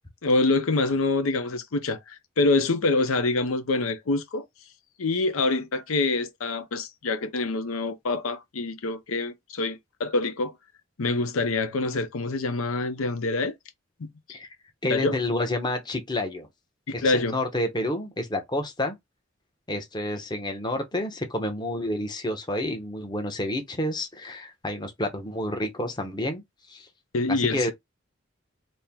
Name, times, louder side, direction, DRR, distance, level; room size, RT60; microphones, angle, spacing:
voice 1, 0.2-4.4 5.0-10.5 11.0-13.5 14.0-14.1 14.9-15.2 16.9-17.4 27.1-27.7, left 3 dB, 90° left, 0.6 m, -26 dB
voice 2, 14.8-16.5 16.9-19.0 19.7-26.9 27.3-27.7, left 1 dB, 20° left, 0.7 m, -29 dB
4.3 x 2.1 x 3.5 m
head